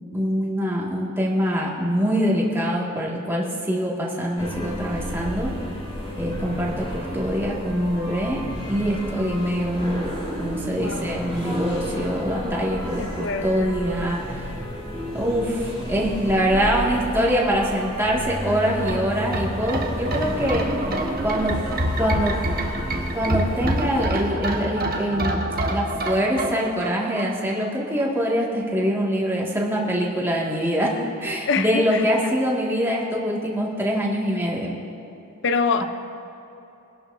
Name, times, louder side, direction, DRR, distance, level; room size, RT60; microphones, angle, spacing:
voice 1, 0.1-5.5 6.2-10.1 10.4-14.5 15.1-20.6 21.2-21.6 22.0-22.4 23.1-30.9 31.2-34.8, equal, 10° right, 2.0 m, -24 dB
sound 1, 4.4-24.0, equal, 30° left, 3.2 m, -32 dB
voice 2, 10.8-11.1 13.0-13.8 31.5-32.2 35.4-35.8, left 4 dB, 60° left, 0.7 m, -25 dB
sound 2, 18.9-27.7 28.0-28.1, right 1 dB, 45° right, 1.2 m, -27 dB
23.5 x 11.5 x 2.7 m
head